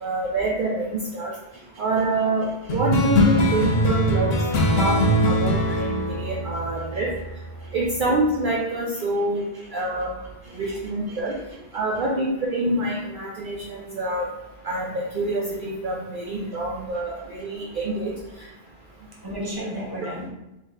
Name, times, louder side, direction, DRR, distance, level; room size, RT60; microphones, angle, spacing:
voice 1, 0.0-1.3 1.8-4.3 4.8-5.0 5.3-7.1 7.7-9.4 9.7-10.1 10.6-11.3 11.7-14.3 14.6-18.1, right 2 dB, 55° right, -4 dB, 0.7 m, -26 dB
sound 1, 2.7-7.6, equal, 75° left, 0.9 m, -22 dB
voice 2, 9.5-9.9 10.4-10.8 11.1-11.4 19.2-20.3, equal, 20° right, -3 dB, 0.9 m, -35 dB
3.8 x 2.7 x 3.6 m, 0.94 s
omnidirectional pair, 1.1 m